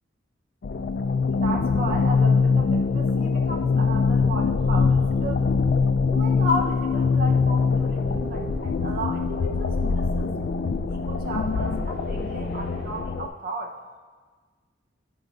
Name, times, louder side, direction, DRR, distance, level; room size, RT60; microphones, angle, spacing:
sound 1, 0.6-13.3, left 4 dB, 55° left, 0.3 m, -23 dB
voice 1, 1.3-5.5 6.1-10.3 10.9-13.7, equal, 50° right, 1 dB, 0.7 m, -34 dB
sound 2, 7.5-13.0, equal, 5° right, 1.1 m, -37 dB
13.5 x 4.6 x 2.4 m, 1.4 s
head